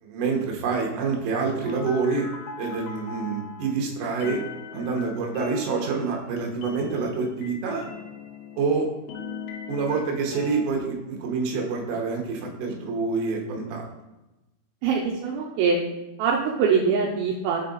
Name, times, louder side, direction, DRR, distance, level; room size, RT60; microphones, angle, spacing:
voice 1, 0.0-2.3 2.6-4.4 4.7-7.9 8.6-8.9 9.7-13.9, right 4 dB, 70° right, 0 dB, 2.2 m, -27 dB
sound 1, 1.6-3.7 4.2-8.8 9.1-10.6, left 6 dB, 85° left, 2.9 m, -40 dB
voice 2, 14.8-15.8 16.2-17.6, right 5 dB, 85° right, -2 dB, 2.3 m, -23 dB
6.9 x 4.1 x 4.0 m, 1.0 s
omnidirectional pair, 4.9 m